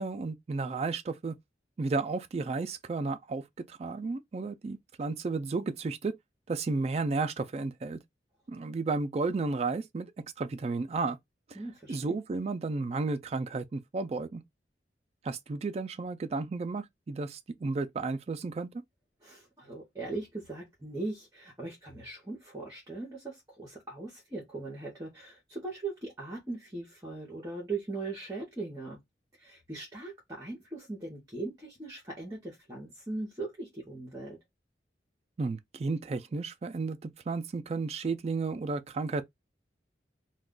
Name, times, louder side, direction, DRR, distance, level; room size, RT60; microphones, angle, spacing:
voice 1, 0.0-1.3 1.8-3.4 3.7-6.1 6.5-8.0 8.5-10.1 10.4-11.2 11.9-14.4 15.2-18.7 35.4-39.2, right 3 dB, 35° right, 0.3 m, -33 dB
voice 2, 11.5-12.2 19.2-29.0 29.4-34.4, right 3 dB, 20° right, 0.8 m, -39 dB
2.3 x 2.2 x 3.6 m
head